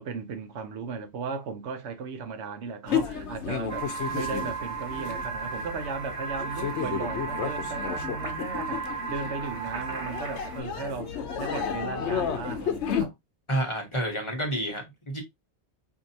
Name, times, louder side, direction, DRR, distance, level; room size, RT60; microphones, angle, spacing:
voice 1, 0.0-13.1, right 5 dB, 80° right, 1.0 m, -36 dB
sound 1, 2.9-13.1, left 7 dB, 80° left, 1.0 m, -32 dB
sound 2, 3.7-10.6, right 5 dB, 30° right, 1.0 m, -35 dB
voice 2, 13.5-15.2, right 1 dB, 30° left, 1.0 m, -29 dB
4.5 x 2.7 x 2.6 m
omnidirectional pair, 1.1 m